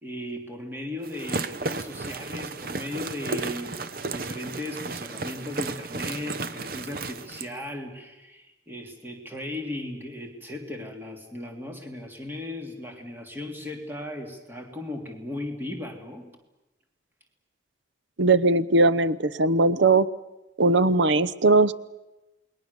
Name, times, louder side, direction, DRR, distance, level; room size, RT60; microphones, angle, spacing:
voice 1, 0.0-16.3, left 1 dB, 10° right, 2 dB, 3.1 m, -37 dB
sound 1, 1.0-7.5, right 3 dB, 50° right, 0.9 m, -33 dB
voice 2, 18.2-20.1 20.6-21.7, right 3 dB, 85° right, 16 dB, 0.9 m, -19 dB
28.5 x 21.5 x 7.1 m, 1.0 s
head